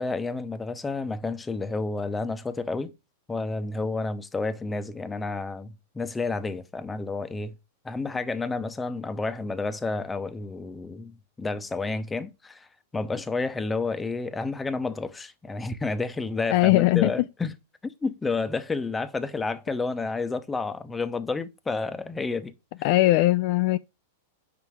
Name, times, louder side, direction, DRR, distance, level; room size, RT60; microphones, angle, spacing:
voice 1, 0.0-2.9 3.3-7.5 7.8-12.7 12.9-17.5 17.8-22.5, left 3 dB, 15° left, 0.7 m, -30 dB
voice 2, 16.5-17.1 22.8-23.8, left 18 dB, 55° left, 0.3 m, -20 dB
5.6 x 4.8 x 4.6 m
hypercardioid pair, 110°, 0 cm